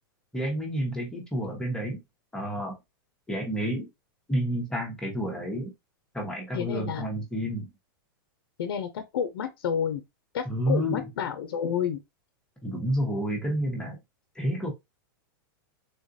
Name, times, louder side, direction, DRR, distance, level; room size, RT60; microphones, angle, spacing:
voice 1, 0.3-2.0 2.3-2.8 3.3-3.9 4.3-5.7 6.1-7.7 10.4-11.1 12.6-14.0 14.3-14.7, equal, 5° left, 0.9 m, -29 dB
voice 2, 6.5-7.0 8.6-10.0 10.3-12.0, left 8 dB, 85° left, 0.7 m, -30 dB
3.7 x 2.3 x 2.6 m
supercardioid pair, 155°, 12 cm